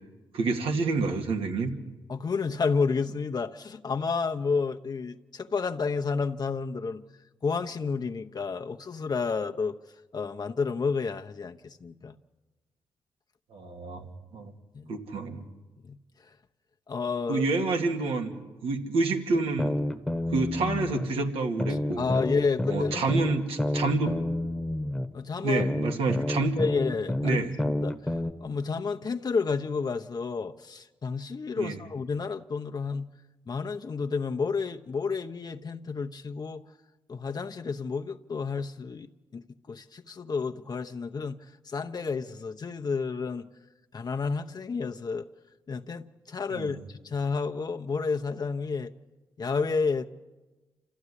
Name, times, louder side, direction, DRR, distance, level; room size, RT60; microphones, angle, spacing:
voice 1, 0.3-1.7 13.5-14.5 14.9-15.4 17.3-18.3 18.6-19.8 20.3-22.0 22.7-24.2 25.4-26.6 27.2-27.5 31.6-31.8 46.5-46.7, right 3 dB, 85° right, 2 dB, 2.3 m, -28 dB
voice 2, 2.1-7.0 7.4-9.8 10.1-12.1 14.7-15.0 15.8-16.0 16.2-16.3 16.9-17.4 21.7-23.1 25.1-25.6 26.6-33.1 33.5-36.6 37.1-43.5 43.9-45.3 45.7-48.9 49.4-50.1, left 4 dB, 45° left, 4 dB, 0.9 m, -31 dB
sound 1, 19.3-21.1 21.6-25.1 25.6-28.3, left 1 dB, 5° left, 1.3 m, -29 dB
27.0 x 13.5 x 9.9 m, 1.2 s
cardioid pair, 60°, 9 cm